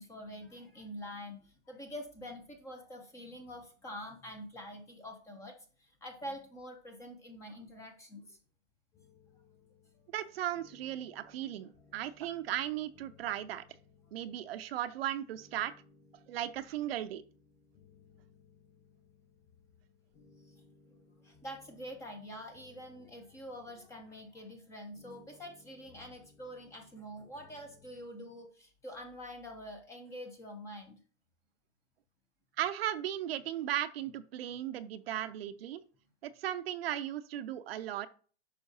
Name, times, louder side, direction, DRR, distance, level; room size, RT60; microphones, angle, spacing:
voice 1, 0.0-8.4 20.5-20.6 21.2-31.0, equal, 10° left, 5 dB, 0.5 m, -46 dB
sound 1, 8.9-28.1, left 4 dB, 40° left, 3.1 m, -64 dB
voice 2, 10.1-13.6 14.1-15.7 16.3-17.2 32.6-35.8 36.2-38.1, right 12 dB, 60° right, 12 dB, 0.6 m, -36 dB
9.3 x 5.7 x 2.8 m, 0.41 s
hypercardioid pair, 155°, 34 cm